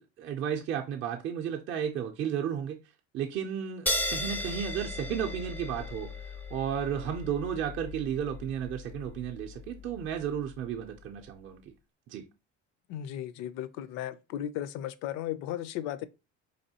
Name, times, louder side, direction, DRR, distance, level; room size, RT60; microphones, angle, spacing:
voice 1, 0.0-2.8 3.1-11.7 12.1-12.3, right 8 dB, 45° right, 0.5 m, -33 dB
sound 1, 3.9-10.8, left 2 dB, 5° left, 0.4 m, -37 dB
voice 2, 12.9-16.1, left 11 dB, 65° left, 0.4 m, -35 dB
4.1 x 3.0 x 2.8 m
cardioid pair, 145°, 29 cm